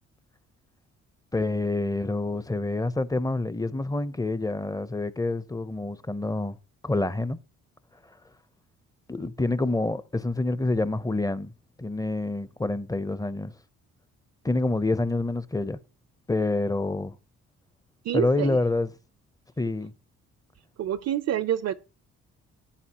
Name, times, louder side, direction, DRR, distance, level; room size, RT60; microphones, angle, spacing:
voice 1, 1.3-6.6 6.8-7.4 9.1-11.5 11.8-13.5 14.4-15.8 16.3-17.2 18.1-18.9 19.6-19.9, left 2 dB, 10° left, 0.7 m, -27 dB
voice 2, 18.0-18.6 20.8-21.7, right 11 dB, 55° right, 0.6 m, -27 dB
14.0 x 9.6 x 2.9 m
cardioid pair, 90°, 30 cm